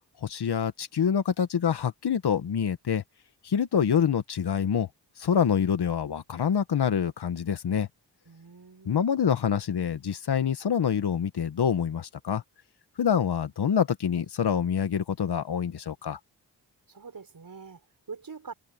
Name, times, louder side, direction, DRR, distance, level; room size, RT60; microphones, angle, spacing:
voice 1, 0.2-3.0 3.4-4.9 5.2-7.9 8.9-12.4 13.0-16.2, left 7 dB, 70° left, 1.8 m, -26 dB
voice 2, 8.3-9.2 16.9-18.5, right 5 dB, 55° right, 7.0 m, -44 dB
cardioid pair, 50°, 41 cm